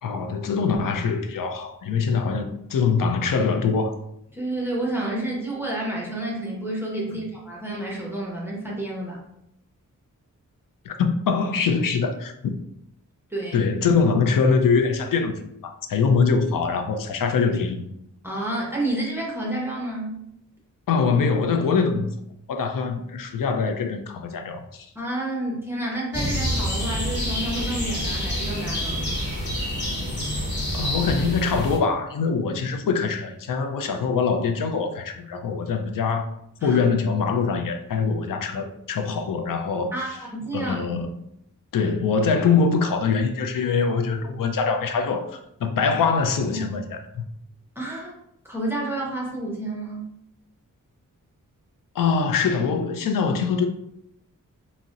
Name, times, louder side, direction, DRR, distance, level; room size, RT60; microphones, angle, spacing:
voice 1, 0.0-4.0 10.8-12.5 13.5-17.9 20.9-22.1 22.5-24.9 30.7-36.3 36.6-40.2 40.5-41.1 41.7-45.3 45.6-47.2 52.0-53.7, left 5 dB, 80° left, 0.5 m, -23 dB
voice 2, 4.3-9.2 13.3-13.6 18.2-20.2 25.0-29.1 36.6-36.8 39.9-40.9 41.8-41.9 46.5-46.8 47.8-48.1 48.4-50.1, right 1 dB, 5° right, 0.5 m, -30 dB
sound 1, 26.1-31.8, equal, 35° left, 1.0 m, -27 dB
3.9 x 2.0 x 2.4 m
wide cardioid pair, 175°, 32 cm